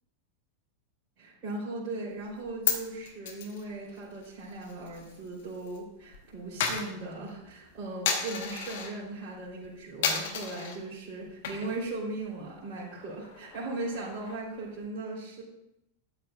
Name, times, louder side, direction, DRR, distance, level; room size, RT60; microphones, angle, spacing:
voice 1, 1.2-15.4, right 2 dB, 35° right, -8 dB, 3.8 m, -38 dB
Coin (dropping), 2.2-5.8 6.0-9.0 9.4-9.7 10.0-10.8 11.3-11.9 12.2-12.3 12.6-14.6, left 7 dB, 55° left, 1.4 m, -34 dB
12.5 x 8.7 x 2.6 m, 0.83 s
figure-of-eight pair, 90°, 0 cm